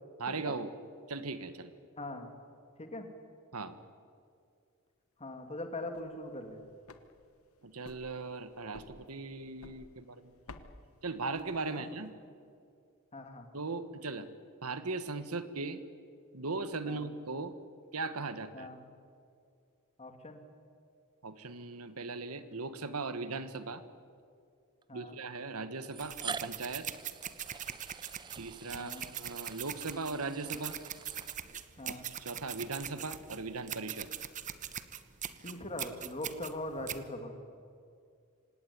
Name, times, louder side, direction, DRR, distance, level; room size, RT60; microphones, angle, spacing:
voice 1, 0.2-0.7 1.1-1.7 3.5-3.7 7.6-10.3 11.0-12.1 13.5-14.3 14.6-15.8 16.3-17.5 17.9-18.7 21.2-23.8 24.9-26.9 28.4-30.8 31.8-34.1, right 3 dB, 90° right, 12 dB, 1.5 m, -38 dB
voice 2, 2.0-2.3 2.8-3.1 5.2-6.6 11.7-11.8 13.1-13.5 16.8-17.1 18.5-18.8 20.0-20.4 24.9-25.2 28.7-29.0 31.8-32.1 35.4-37.4, left 1 dB, 30° left, 6 dB, 2.5 m, -41 dB
sound 1, 5.7-12.0, left 2 dB, 75° left, 1.4 m, -55 dB
sound 2, 22.4-22.5 23.6-23.7 24.8-24.9 25.8-31.8, right 5 dB, 20° right, 0.5 m, -46 dB
sound 3, 26.0-37.0, right 9 dB, 35° right, 1.0 m, -42 dB
25.0 x 18.0 x 10.0 m, 2.3 s
head